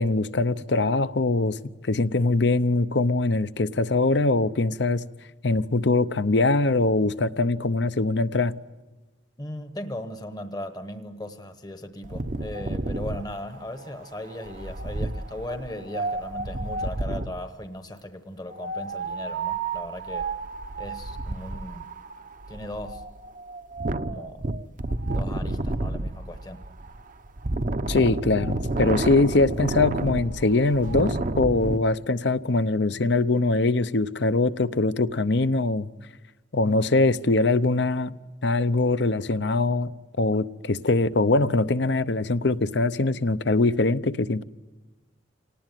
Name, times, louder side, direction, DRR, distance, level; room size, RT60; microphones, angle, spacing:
voice 1, 0.0-1.6 1.8-5.0 5.4-8.5 27.9-35.9 36.5-38.2 38.4-39.9 40.2-44.4, left 2 dB, 60° left, 14 dB, 0.8 m, -22 dB
voice 2, 9.4-20.3 20.8-21.9 22.5-23.1 24.1-24.5 25.0-26.7 36.6-37.0, left 1 dB, 20° left, 8 dB, 1.0 m, -38 dB
Wind, 12.0-17.5 18.5-31.8, right 2 dB, 45° right, 0.8 m, -31 dB
27.0 x 19.0 x 9.3 m, 1.2 s
head